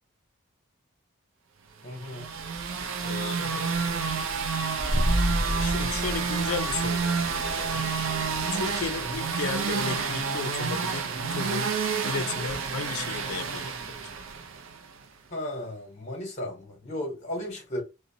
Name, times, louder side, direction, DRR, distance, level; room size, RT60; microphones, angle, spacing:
voice 1, 1.8-2.3 15.3-17.8, left 1 dB, 35° left, 0.9 m, -35 dB
sound 1, 2.0-14.9, right 5 dB, 60° right, 0.5 m, -29 dB
voice 2, 3.0-4.3 5.6-7.9 8.5-11.7 12.0-14.0, left 5 dB, 80° left, 0.4 m, -35 dB
sound 2, 4.8-10.3, equal, 5° left, 0.4 m, -32 dB
2.6 x 2.1 x 2.7 m
head